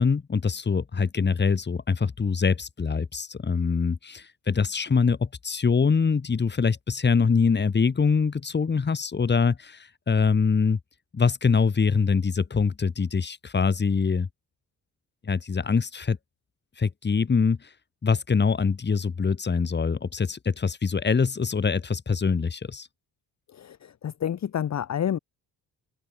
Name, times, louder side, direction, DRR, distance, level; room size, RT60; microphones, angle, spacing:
voice 1, 0.0-10.8 11.1-14.3 15.2-16.2 16.8-17.7 18.0-22.9, left 5 dB, 25° left, 1.5 m, -24 dB
voice 2, 23.5-25.2, left 9 dB, 45° left, 0.9 m, -29 dB
open air
cardioid pair, 95°, 38 cm